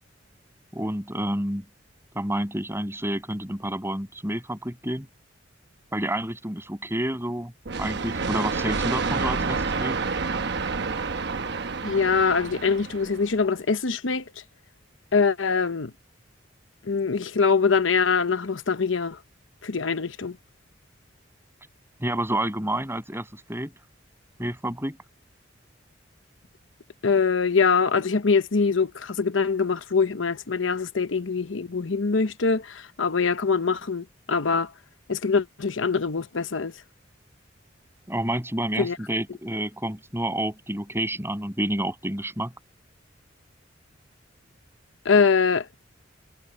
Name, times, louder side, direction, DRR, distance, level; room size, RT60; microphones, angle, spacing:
voice 1, 0.7-1.6 2.1-5.1 5.9-7.5 7.8-10.0 22.0-23.7 24.4-25.0 38.1-42.5, right 1 dB, 15° right, 7.0 m, -29 dB
sound 1, 7.7-13.4, right 4 dB, 60° right, 1.0 m, -29 dB
voice 2, 11.8-14.2 15.1-15.9 16.8-19.2 19.6-20.4 27.0-34.7 35.1-36.7 38.8-39.0 45.0-45.7, left 5 dB, 75° left, 0.9 m, -23 dB
head